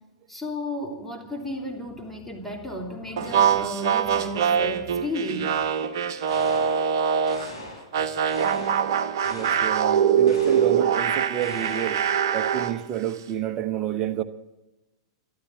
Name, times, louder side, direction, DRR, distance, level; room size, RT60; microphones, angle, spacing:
voice 1, 0.3-5.5, left 1 dB, 5° left, 0 dB, 2.9 m, -33 dB
sound 1, 3.2-7.5 7.9-12.8, right 8 dB, 50° right, 1.2 m, -23 dB
sound 2, 6.3-6.9 7.3-7.9 8.3-8.9 9.2-9.8 10.3-10.8 11.4-12.1, left 1 dB, 85° left, 5.8 m, -41 dB
voice 2, 9.3-12.0 12.3-14.2, right 11 dB, 35° right, 10 dB, 1.0 m, -29 dB
13.0 x 12.5 x 7.5 m, 0.98 s
figure-of-eight pair, 95°, 2 cm